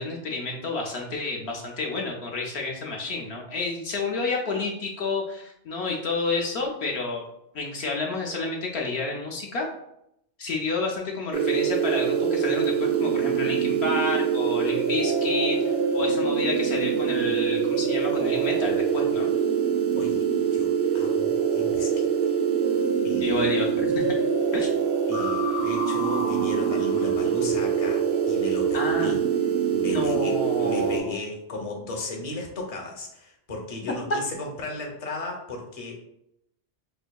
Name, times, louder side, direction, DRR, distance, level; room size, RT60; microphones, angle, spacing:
voice 1, 0.0-7.2 7.5-9.7 10.4-19.3 23.2-24.0 24.5-24.7 28.7-29.2 29.8-31.2 34.1-34.2, left 3 dB, 70° left, 0 dB, 0.8 m, -30 dB
sound 1, 11.3-31.0, right 7 dB, 60° right, 0.7 m, -24 dB
voice 2, 20.0-22.0 23.0-23.4 25.1-29.2 29.7-35.9, left 2 dB, 40° left, 1 dB, 0.6 m, -36 dB
4.4 x 2.5 x 2.2 m, 0.78 s
omnidirectional pair, 1.2 m